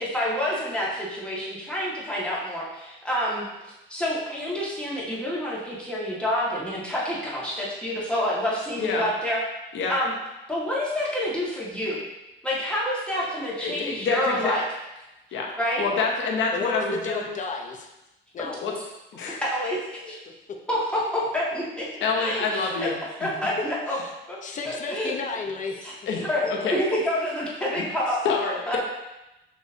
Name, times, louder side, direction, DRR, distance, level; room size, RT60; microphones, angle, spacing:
voice 1, 0.0-3.5 3.9-9.4 9.9-10.1 10.5-12.0 12.4-14.6 15.6-15.9 19.3-20.2 20.7-21.8 22.2-22.9 23.2-24.0 24.3-24.4 24.6-25.1 25.8-25.9 26.3-28.2 28.7-28.8, left 1 dB, 5° left, -7 dB, 1.7 m, -28 dB
voice 2, 13.6-14.6 15.3-15.5 15.8-17.3 18.6-18.7 19.1-19.4 22.0-22.9 23.2-23.3 26.1-26.3 26.6-26.8 28.2-28.8, left 4 dB, 75° left, 0 dB, 0.9 m, -26 dB
voice 3, 16.5-17.9 18.3-18.7 23.6-24.1 24.4-25.9 26.2-26.3, left 4 dB, 40° left, 1 dB, 0.6 m, -33 dB
6.4 x 3.1 x 2.7 m, 0.96 s
cardioid pair, 90°, 20 cm